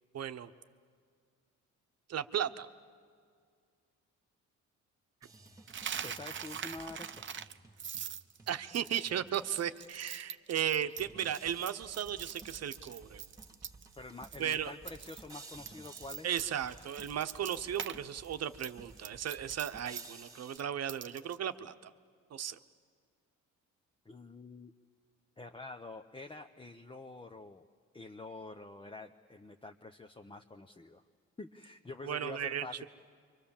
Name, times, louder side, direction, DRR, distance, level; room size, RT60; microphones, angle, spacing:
voice 1, 0.1-0.5 2.1-2.7 8.5-13.2 14.4-14.7 16.2-21.7 22.3-22.6 32.0-32.9, right 9 dB, 55° right, 10 dB, 1.1 m, -35 dB
sound 1, 5.2-9.6 10.1-10.2 11.0-20.6, right 3 dB, 10° right, 2.1 m, -55 dB
Coin (dropping), 5.7-14.0 14.2-14.6 14.9-18.0 18.2-21.4, right 8 dB, 40° right, 0.8 m, -43 dB
voice 2, 6.0-7.3 14.0-16.4 24.0-24.7 25.4-27.6 27.9-31.0 31.4-32.9, left 2 dB, 15° left, 4 dB, 0.9 m, -47 dB
29.5 x 24.5 x 7.3 m, 2.1 s
cardioid pair, 90°, 30 cm